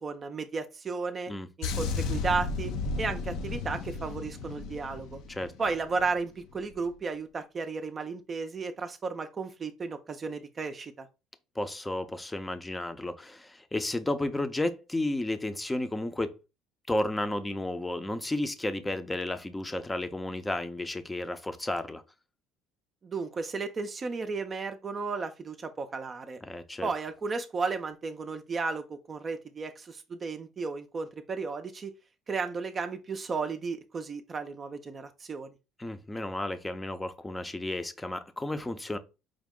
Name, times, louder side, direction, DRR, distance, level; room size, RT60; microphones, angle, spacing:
voice 1, 0.0-1.3 1.6-2.7 3.0-5.2 5.6-11.1 23.0-26.4 26.8-31.9 32.3-35.5, right 4 dB, 35° right, 0.5 m, -34 dB
sound 1, 1.6-6.2 6.4-6.7, left 4 dB, 70° left, 0.5 m, -34 dB
voice 2, 11.6-16.3 16.9-22.0 26.5-26.9 35.8-39.0, left 1 dB, 10° left, 0.6 m, -32 dB
5.0 x 2.1 x 3.6 m
supercardioid pair, 95°, 0 cm